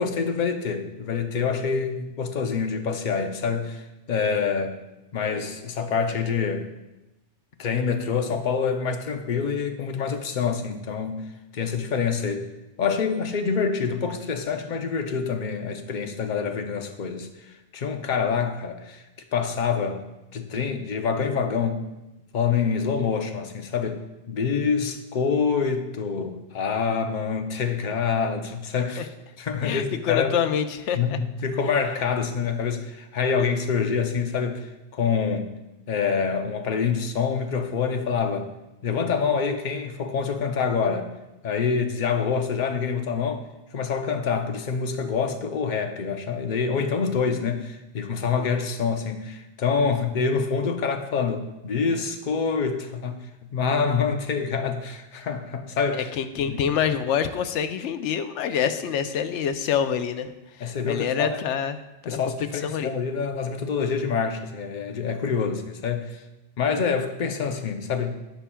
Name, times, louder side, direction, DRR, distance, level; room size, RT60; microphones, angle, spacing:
voice 1, 0.0-4.7 5.1-6.7 7.6-11.2 11.5-12.5 12.8-17.3 17.7-19.0 19.3-20.0 20.3-21.8 22.3-29.1 29.4-30.3 30.9-35.5 35.9-38.5 38.8-41.1 41.4-43.4 43.7-53.3 53.5-56.1 56.5-56.6 60.6-61.4 62.1-66.2 66.6-68.2, left 5 dB, 45° left, 6 dB, 0.7 m, -26 dB
voice 2, 29.6-31.2 55.9-62.2 62.6-62.9, left 8 dB, 80° left, 9 dB, 0.9 m, -26 dB
14.5 x 5.7 x 2.3 m, 0.98 s
omnidirectional pair, 1.2 m